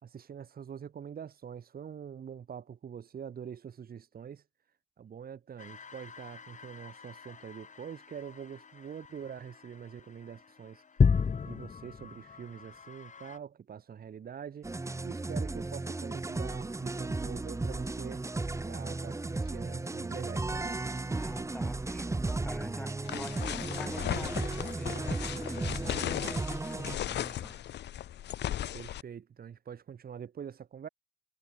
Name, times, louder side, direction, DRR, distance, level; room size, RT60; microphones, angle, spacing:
voice 1, 0.0-4.4 5.0-10.8 11.4-14.7 15.0-18.2 18.7-20.8 28.7-30.9, right 8 dB, 50° right, 2.0 m, -44 dB
sound 1, 5.6-13.4, left 6 dB, 40° left, 2.9 m, -34 dB
sound 2, 14.6-27.0, right 2 dB, 15° right, 1.0 m, -35 dB
voice 2, 21.1-26.3 27.0-27.7, left 1 dB, 5° left, 4.4 m, -46 dB
sound 3, 23.0-29.0, left 12 dB, 60° left, 0.7 m, -36 dB
cardioid pair, 90°, 20 cm